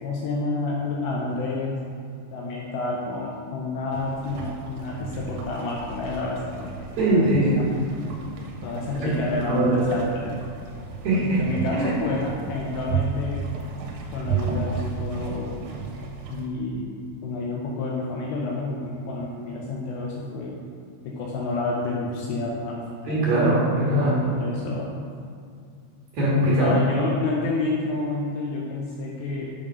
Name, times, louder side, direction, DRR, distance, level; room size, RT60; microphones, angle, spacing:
voice 1, 0.0-1.8 2.3-7.3 7.6-7.7 8.6-10.4 11.2-13.4 14.1-15.5 16.3-16.9 17.2-20.6 21.1-23.5 24.2-24.9 26.6-29.5, left 3 dB, 85° left, -3 dB, 2.6 m, -29 dB
sound 1, 3.9-16.5, right 5 dB, 85° right, 3.2 m, -33 dB
voice 2, 7.0-7.5 9.5-9.8 11.0-11.4 11.7-11.9 23.1-24.2 26.1-26.7, right 1 dB, 60° right, -7 dB, 2.9 m, -21 dB
8.4 x 3.7 x 5.3 m, 2.3 s
omnidirectional pair, 5.6 m